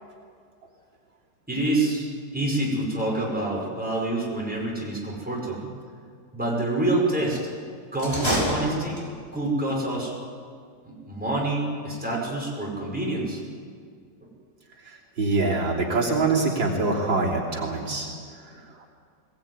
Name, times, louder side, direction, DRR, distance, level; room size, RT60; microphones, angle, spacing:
voice 1, 1.5-2.1 2.3-5.7 6.3-7.4 7.9-9.0 9.3-10.1 10.8-13.4, right 2 dB, 5° right, -4 dB, 5.7 m, -27 dB
sound 1, 7.9-9.3, equal, 15° left, 6.0 m, -27 dB
voice 2, 15.2-18.1, right 3 dB, 80° right, -3 dB, 3.9 m, -24 dB
21.5 x 19.0 x 9.6 m, 2.2 s
omnidirectional pair, 2.1 m